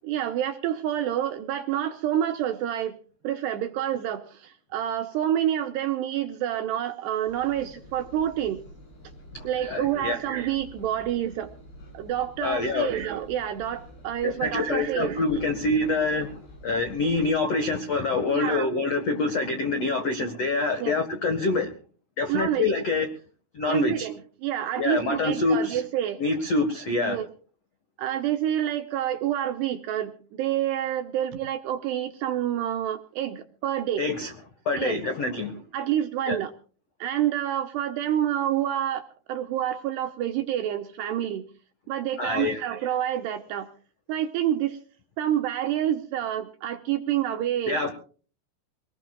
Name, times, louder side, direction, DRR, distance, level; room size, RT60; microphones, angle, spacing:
voice 1, 0.0-3.0 3.2-8.6 9.4-11.5 11.9-15.2 18.3-18.7 20.8-21.0 22.3-22.7 23.7-26.2 27.0-27.3 28.0-34.1 34.7-35.0 35.7-36.5 37.0-41.5 41.9-43.7 44.1-44.8 45.2-47.8, right 11 dB, 75° right, 6 dB, 2.6 m, -28 dB
Engine, 7.3-17.4, equal, 50° left, 8.7 m, -48 dB
voice 2, 9.3-10.1 12.4-12.9 14.2-21.7 22.2-23.1 23.5-24.1 24.8-25.8 26.2-27.2 34.0-34.3 34.6-35.6 36.2-36.4 42.2-42.6 47.7-47.9, left 3 dB, 85° left, 6 dB, 1.3 m, -26 dB
23.5 x 20.0 x 2.5 m, 0.40 s
omnidirectional pair, 5.9 m